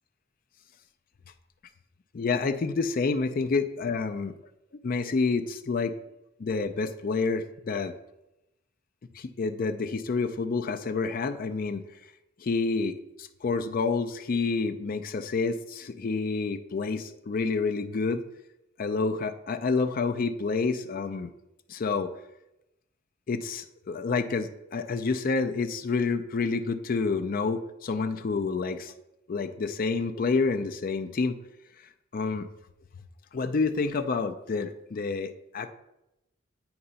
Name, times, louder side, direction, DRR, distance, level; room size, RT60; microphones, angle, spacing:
voice 1, 2.1-4.3 4.8-5.9 6.4-7.9 9.1-11.8 12.4-18.2 18.8-21.3 21.7-22.1 23.3-28.9 29.3-31.4 32.1-32.5 33.3-35.7, left 4 dB, 45° left, 9 dB, 0.4 m, -28 dB
8.6 x 3.0 x 5.4 m, 0.88 s
head